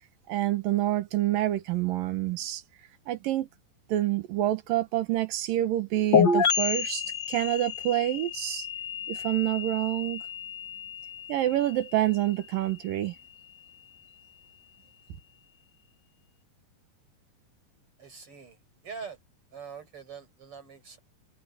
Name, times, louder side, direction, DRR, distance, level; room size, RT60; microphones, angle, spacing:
voice 1, 0.3-2.6 3.1-3.5 3.9-8.7 9.1-10.2 11.3-13.1, right 14 dB, 85° right, 2.9 m, -27 dB
sound 1, 6.1-13.7, left 6 dB, 40° left, 1.9 m, -30 dB
voice 2, 18.0-18.6 18.8-19.2 19.5-21.0, right 6 dB, 40° right, 6.0 m, -43 dB
omnidirectional pair, 3.9 m